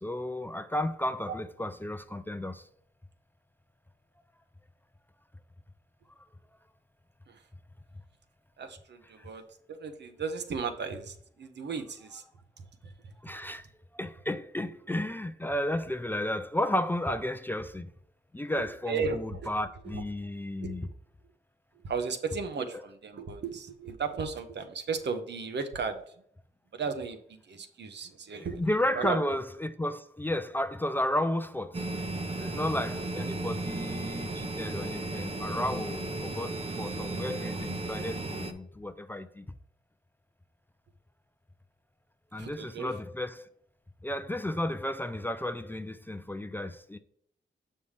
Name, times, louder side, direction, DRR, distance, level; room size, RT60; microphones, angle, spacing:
voice 1, 0.0-2.6 13.2-13.7 13.9-17.9 18.3-20.9 28.3-31.9 32.4-39.5 42.3-43.5 44.0-47.0, left 1 dB, 10° left, 0.4 m, -33 dB
voice 2, 8.6-9.4 9.7-12.2 13.0-13.1 18.6-19.5 19.8-20.0 20.6-20.9 21.8-26.0 26.7-28.6 28.9-29.4 42.4-43.0, right 5 dB, 65° right, 1.0 m, -35 dB
sound 1, 31.7-38.5, right 2 dB, 30° right, 0.8 m, -35 dB
6.9 x 5.5 x 3.3 m
cardioid pair, 75°, 19 cm